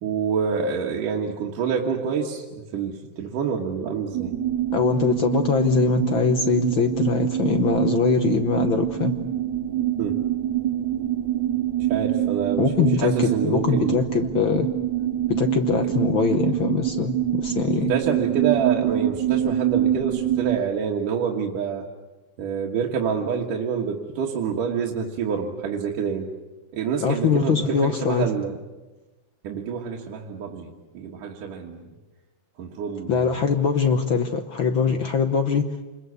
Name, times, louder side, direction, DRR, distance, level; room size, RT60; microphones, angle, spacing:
voice 1, 0.0-4.3 10.0-10.2 11.8-13.9 15.9-16.0 17.9-21.9 22.4-26.3 26.7-28.6 29.4-31.9 32.6-33.4 34.9-35.0, right 6 dB, 90° right, -1 dB, 3.2 m, -27 dB
sound 1, 4.1-20.6, right 12 dB, 70° right, 2.6 m, -25 dB
voice 2, 4.7-9.2 12.6-14.7 15.3-17.9 27.0-28.3 33.1-35.6, left 6 dB, 65° left, 7 dB, 1.2 m, -22 dB
27.5 x 21.5 x 8.3 m, 1.2 s
omnidirectional pair, 3.6 m